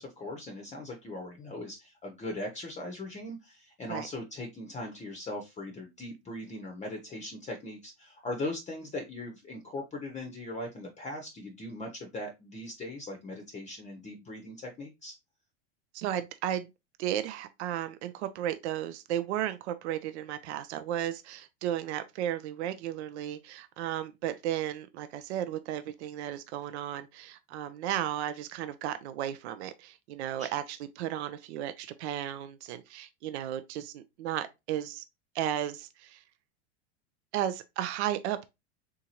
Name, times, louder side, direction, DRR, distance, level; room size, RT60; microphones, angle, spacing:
voice 1, 0.0-15.1 30.4-30.6, left 1 dB, 20° left, 0.7 m, -39 dB
voice 2, 15.9-16.7 17.0-35.0 35.3-36.2 37.3-38.5, right 11 dB, 70° right, 0.5 m, -34 dB
3.7 x 2.7 x 2.8 m
hypercardioid pair, 100°, 35 cm